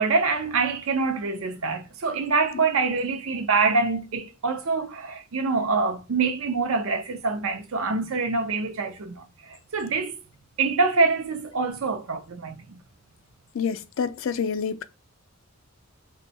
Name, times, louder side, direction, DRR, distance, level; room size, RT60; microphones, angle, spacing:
voice 1, 0.0-10.2 10.6-12.8, right 4 dB, 80° right, 0.6 m, -25 dB
voice 2, 13.5-14.8, left 6 dB, 70° left, 0.4 m, -27 dB
2.6 x 2.2 x 4.1 m
head